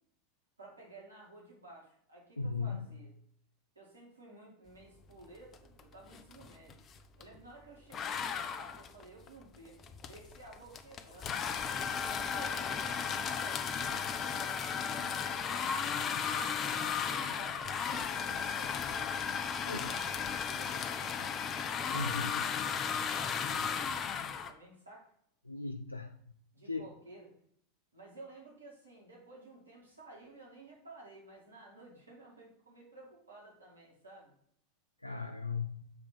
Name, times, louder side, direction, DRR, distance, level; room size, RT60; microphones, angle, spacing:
voice 1, 0.6-3.1 3.7-6.8 7.2-11.4 12.0-16.0 16.6-19.1 19.7-21.4 21.9-25.1 26.5-27.3 27.9-34.3, right 2 dB, 85° right, 2.3 m, -54 dB
voice 2, 2.4-2.9 19.7-19.9 21.9-22.3 25.5-26.1 26.7-26.8 35.0-35.8, left 4 dB, 90° left, 0.3 m, -37 dB
sound 1, 5.5-5.8 6.1-7.4 7.9-24.5, left 7 dB, 30° left, 0.7 m, -35 dB
7.2 x 3.4 x 5.1 m
figure-of-eight pair, 80°, 0 cm